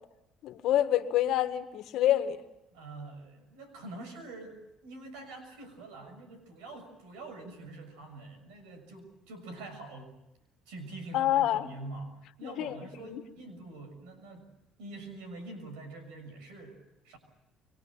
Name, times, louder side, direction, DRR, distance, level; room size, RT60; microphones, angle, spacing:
voice 1, 0.4-2.4 11.1-11.7 12.4-12.7 13.0-13.2, left 12 dB, 70° left, 1.7 m, -27 dB
voice 2, 2.7-10.2 10.7-14.5 14.8-16.8 17.0-17.2, right 2 dB, 90° right, 6.5 m, -45 dB
26.5 x 22.5 x 7.5 m
supercardioid pair, 80°, 0 cm